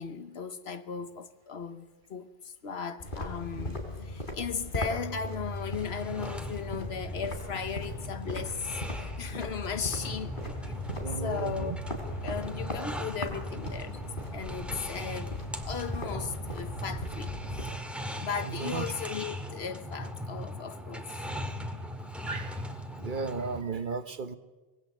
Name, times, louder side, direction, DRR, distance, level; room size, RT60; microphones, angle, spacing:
voice 1, 0.0-10.8 11.2-11.7 12.0-14.0 14.3-15.3 15.6-17.3 18.2-21.2, left 6 dB, 85° left, 1.3 m, -37 dB
sound 1, 3.0-17.8, left 1 dB, 55° left, 3.6 m, -38 dB
sound 2, 5.6-23.6, equal, ahead, 1.9 m, -40 dB
voice 2, 11.0-11.8 18.4-18.8 22.3-22.7 22.9-24.4, right 4 dB, 55° right, 1.2 m, -35 dB
25.5 x 20.0 x 7.5 m
omnidirectional pair, 1.0 m